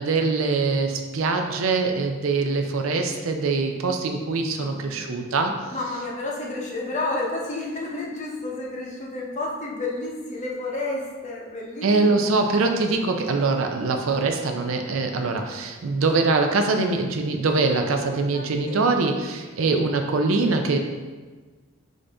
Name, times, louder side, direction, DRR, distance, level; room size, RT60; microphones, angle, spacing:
voice 1, 0.0-5.5 11.8-20.8, right 3 dB, 70° right, 4 dB, 0.5 m, -23 dB
voice 2, 4.6-5.1 5.7-12.6 18.3-18.8, left 2 dB, 35° left, -2 dB, 0.7 m, -31 dB
5.0 x 2.6 x 3.3 m, 1.4 s
head